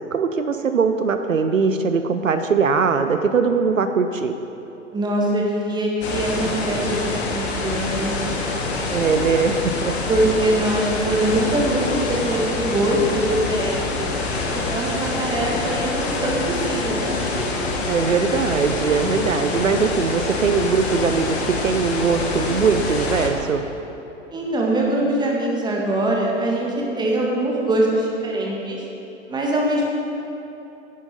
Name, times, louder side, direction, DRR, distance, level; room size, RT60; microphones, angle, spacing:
voice 1, 0.1-4.3 8.9-10.0 17.9-23.6, right 5 dB, 80° right, 8 dB, 0.7 m, -21 dB
voice 2, 4.9-8.2 10.1-14.1 14.7-17.2 24.3-28.8 29.3-29.9, right 1 dB, 10° right, -2 dB, 1.7 m, -23 dB
sound 1, 6.0-23.3, left 3 dB, 55° left, 1.7 m, -26 dB
10.5 x 9.5 x 5.2 m, 3.0 s
figure-of-eight pair, 105°, 39 cm